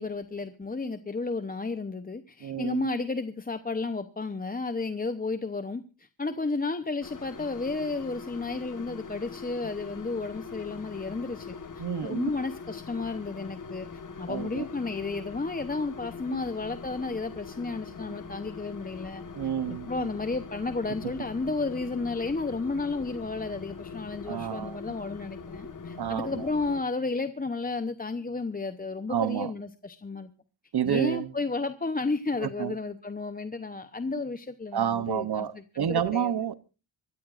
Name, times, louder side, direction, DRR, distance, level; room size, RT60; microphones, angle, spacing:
voice 1, 0.0-13.9 14.2-19.2 19.7-30.3 30.8-36.3, left 3 dB, 20° left, 0.7 m, -32 dB
voice 2, 2.4-3.0 11.8-12.3 14.3-14.7 16.3-16.4 19.3-20.1 24.2-24.8 26.0-26.5 29.1-29.5 30.7-31.3 32.4-32.8 34.7-36.5, right 9 dB, 50° right, 0.8 m, -30 dB
sound 1, 7.0-26.8, left 5 dB, 40° left, 1.4 m, -42 dB
sound 2, 10.1-24.6, left 5 dB, 65° left, 5.9 m, -57 dB
25.5 x 13.5 x 2.5 m
wide cardioid pair, 135°, 48 cm